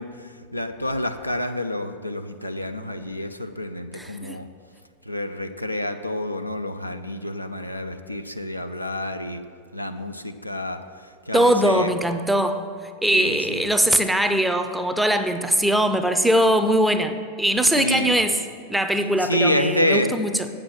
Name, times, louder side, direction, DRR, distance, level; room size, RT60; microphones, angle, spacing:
voice 1, 0.0-4.5 5.1-9.4 9.7-11.9 13.1-13.6 17.8-18.1 19.2-20.2, left 1 dB, 90° left, 7 dB, 0.4 m, -28 dB
voice 2, 3.9-4.4 11.3-12.7 13.0-18.4 18.7-20.5, right 1 dB, 5° right, 8 dB, 0.5 m, -21 dB
8.4 x 6.8 x 5.9 m, 2.2 s
figure-of-eight pair, 90°, 0 cm